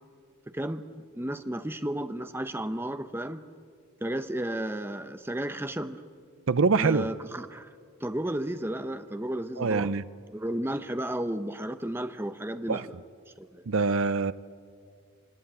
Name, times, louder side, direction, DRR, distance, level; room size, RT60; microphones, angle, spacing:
voice 1, 1.1-3.4 4.0-6.0 6.7-7.7 8.0-9.9 10.3-12.9 13.4-13.6, right 1 dB, 10° right, 10 dB, 0.8 m, -33 dB
voice 2, 6.5-7.1 9.6-10.0 12.7-12.9 13.7-14.3, right 4 dB, 60° right, 17 dB, 0.6 m, -24 dB
23.5 x 19.5 x 8.9 m, 2.2 s
head